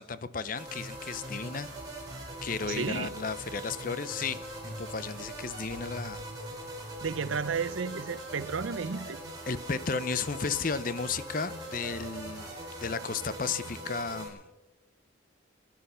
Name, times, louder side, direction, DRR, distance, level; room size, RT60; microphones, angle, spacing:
voice 1, 0.0-1.7 2.4-6.3 9.5-14.4, left 5 dB, 45° left, 0.6 m, -34 dB
sound 1, 0.6-14.3, right 1 dB, 20° right, 4.1 m, -41 dB
voice 2, 2.7-3.1 7.0-9.2, right 5 dB, 85° right, 0.7 m, -32 dB
24.0 x 10.5 x 5.7 m
head